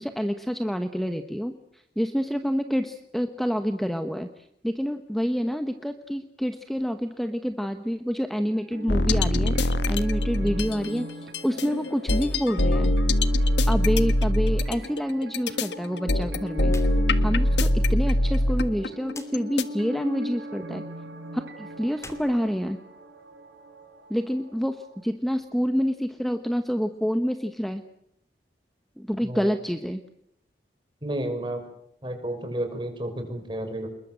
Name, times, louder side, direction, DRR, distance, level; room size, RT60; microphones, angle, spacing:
voice 1, 0.0-12.9 13.7-16.7 17.2-20.8 21.3-22.8 24.1-27.8 29.0-30.0, equal, ahead, 7 dB, 1.1 m, -28 dB
sound 1, 8.5-25.0, left 1 dB, 85° right, 4.7 m, -39 dB
sound 2, 8.9-10.9 11.3-19.6, left 1 dB, 85° left, 1.6 m, -23 dB
sound 3, 16.6-16.9 17.3-17.4 19.1-19.3 21.9-23.2, left 3 dB, 15° left, 2.7 m, -45 dB
voice 2, 29.2-29.5 31.0-31.6 32.0-33.9, right 1 dB, 25° right, 6 dB, 5.5 m, -31 dB
28.0 x 21.5 x 7.7 m, 0.74 s
head